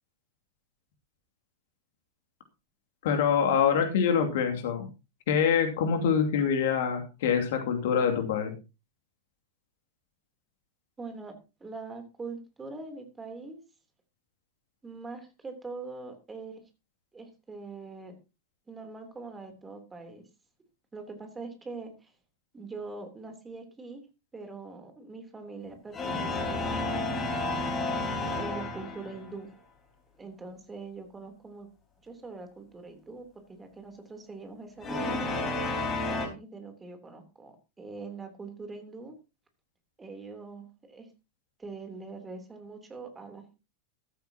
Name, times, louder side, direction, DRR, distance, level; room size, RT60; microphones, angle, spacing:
voice 1, 3.0-4.9 5.3-8.6, left 7 dB, 55° left, 5 dB, 2.7 m, -25 dB
voice 2, 11.0-11.4 11.6-13.6 14.8-16.6 17.1-18.2 18.7-20.2 20.9-22.1 22.5-24.0 24.3-27.2 28.3-29.5 30.2-31.7 32.0-35.4 36.1-39.2 40.0-41.1 41.6-43.5, right 3 dB, 15° right, 6 dB, 3.4 m, -43 dB
sound 1, 25.9-29.3 34.8-36.3, left 2 dB, 20° left, 4.7 m, -31 dB
14.5 x 13.0 x 2.9 m, 0.29 s
figure-of-eight pair, 90°, 0 cm